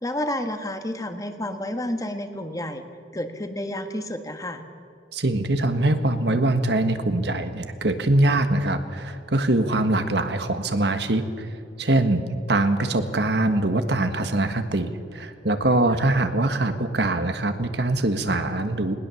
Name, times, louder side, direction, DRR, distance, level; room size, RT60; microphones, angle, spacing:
voice 1, 0.0-2.8 3.1-4.6 15.9-16.0, left 1 dB, 20° left, 7 dB, 1.4 m, -30 dB
voice 2, 5.1-11.5 11.8-18.9, right 2 dB, 65° right, 8 dB, 1.5 m, -23 dB
20.0 x 20.0 x 7.1 m, 2.3 s
head